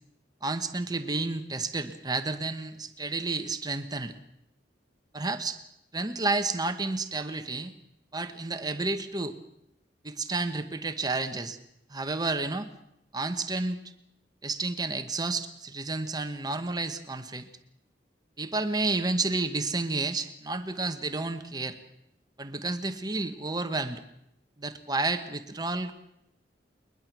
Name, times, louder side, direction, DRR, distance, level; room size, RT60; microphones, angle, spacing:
voice 1, 0.4-4.1 5.1-5.6 5.9-7.7 8.1-9.3 10.0-11.6 11.9-12.7 13.1-13.8 14.4-17.5 18.4-21.8 22.4-24.0 24.6-26.0, right 3 dB, 25° right, 9 dB, 1.1 m, -31 dB
21.5 x 21.0 x 6.0 m, 0.78 s
head